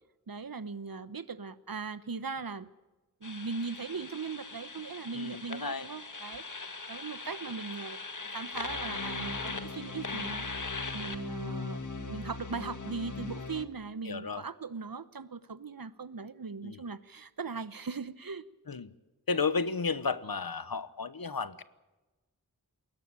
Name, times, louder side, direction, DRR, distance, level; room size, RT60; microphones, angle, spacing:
voice 1, 0.3-2.7 3.2-8.0 8.3-10.5 10.9-18.4, right 4 dB, 70° right, 15 dB, 1.0 m, -39 dB
sound 1, 3.2-13.7, left 3 dB, 55° left, 1.6 m, -39 dB
voice 2, 5.1-5.9 14.0-14.4 16.6-16.8 18.7-18.9 19.3-21.6, left 4 dB, 70° left, 15 dB, 1.0 m, -33 dB
21.0 x 17.5 x 8.8 m, 1.1 s
wide cardioid pair, 45°, 36 cm